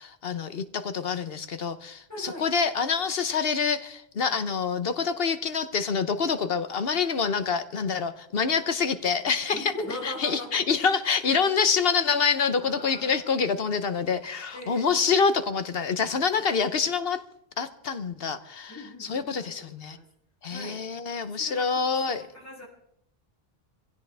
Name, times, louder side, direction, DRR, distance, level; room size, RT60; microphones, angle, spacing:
voice 1, 0.0-9.7 10.0-17.2 17.6-20.0 20.4-22.2, left 5 dB, 70° left, 11 dB, 1.2 m, -26 dB
voice 2, 2.1-2.4 9.5-10.6 12.6-13.4 14.5-14.9 18.7-20.0 20.5-20.8 21.3-22.6, equal, 15° left, -4 dB, 4.6 m, -40 dB
24.0 x 16.0 x 3.5 m, 0.72 s
omnidirectional pair, 1.0 m